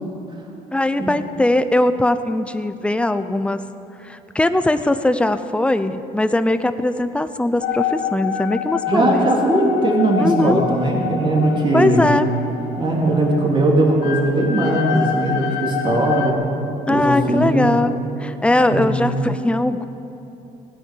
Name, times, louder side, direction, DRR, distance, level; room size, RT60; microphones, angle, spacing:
voice 1, 0.7-3.7 4.0-9.3 10.2-10.7 11.7-12.3 16.9-17.9 18.2-19.8, left 1 dB, 5° left, 11 dB, 0.7 m, -20 dB
sound 1, 7.6-16.3, left 7 dB, 80° left, 1.2 m, -27 dB
voice 2, 8.9-12.1 12.8-16.4 16.9-17.7 18.7-19.1, right 1 dB, 30° right, -2 dB, 3.6 m, -19 dB
18.0 x 9.9 x 7.8 m, 3.0 s
cardioid pair, 110°, 17 cm